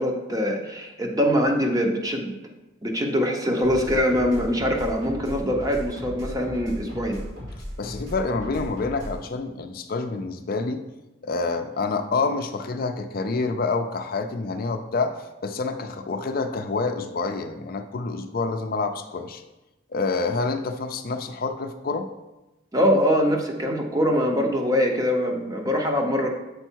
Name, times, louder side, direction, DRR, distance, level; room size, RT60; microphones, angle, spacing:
voice 1, 0.0-2.3 2.8-7.2 22.7-26.3, equal, 20° right, 2 dB, 0.8 m, -23 dB
sound 1, 3.6-9.2, equal, 80° right, 2.6 m, -37 dB
voice 2, 7.8-10.8 11.2-15.1 15.4-19.4 19.9-22.1, left 3 dB, 50° left, 7 dB, 0.4 m, -27 dB
6.9 x 4.5 x 4.5 m, 1.0 s
head